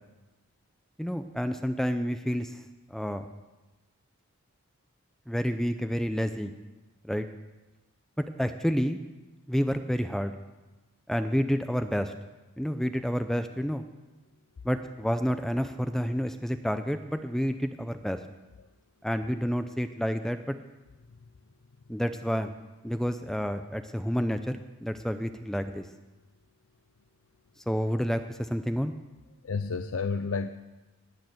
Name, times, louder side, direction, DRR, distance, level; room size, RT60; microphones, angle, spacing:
voice 1, 1.0-2.6 2.9-3.2 5.3-6.5 7.0-7.3 8.2-9.0 9.5-10.3 11.1-12.1 12.6-13.8 14.6-18.2 19.0-20.5 21.9-22.5 22.8-25.8 27.7-28.9, equal, ahead, 9 dB, 0.5 m, -29 dB
voice 2, 29.4-30.5, left 4 dB, 65° left, 10 dB, 0.5 m, -30 dB
19.0 x 6.6 x 7.8 m, 1.1 s
head